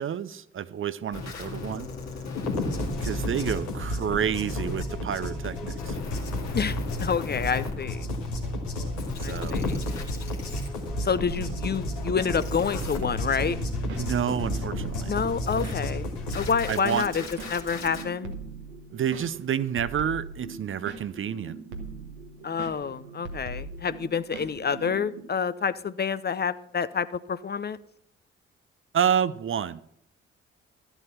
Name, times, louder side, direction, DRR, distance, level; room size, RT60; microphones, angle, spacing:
voice 1, 0.0-1.9 3.0-6.0 9.2-9.6 14.0-15.2 16.7-17.1 18.9-21.6 28.9-29.8, right 8 dB, 40° right, 0.6 m, -29 dB
sound 1, 1.1-4.8 5.8-8.5 8.8-13.0 15.5-15.7 16.3-18.0, left 4 dB, 55° left, 2.1 m, -39 dB
sound 2, 2.4-16.5, left 1 dB, 85° left, 1.6 m, -32 dB
voice 2, 6.5-8.1 9.2-9.8 11.0-13.6 15.1-17.2 17.5-18.3 22.4-27.8, left 6 dB, 30° left, 0.6 m, -28 dB
sound 3, 11.3-25.2, right 3 dB, 85° right, 1.1 m, -41 dB
12.5 x 8.0 x 5.8 m
hypercardioid pair, 40°, 33 cm